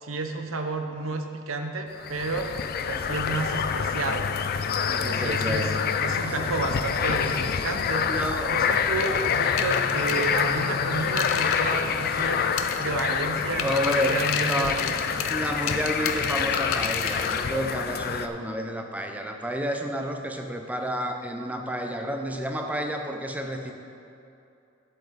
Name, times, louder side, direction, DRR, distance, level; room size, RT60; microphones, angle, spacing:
voice 1, 0.0-2.5 2.9-4.3 4.8-8.1 8.5-12.4 12.8-15.3, right 3 dB, 75° right, 5 dB, 0.9 m, -31 dB
sound 1, 2.0-18.3, left 6 dB, 50° left, 0.4 m, -27 dB
voice 2, 5.0-5.8 6.3-6.5 7.2-7.4 8.1-8.6 10.1-10.3 13.6-15.0 15.3-23.7, equal, 5° right, 3 dB, 0.6 m, -30 dB
sound 2, 9.0-12.3 12.6-13.2 13.6-17.5, left 7 dB, 85° left, 0.7 m, -33 dB
11.0 x 7.8 x 4.1 m, 2.7 s
head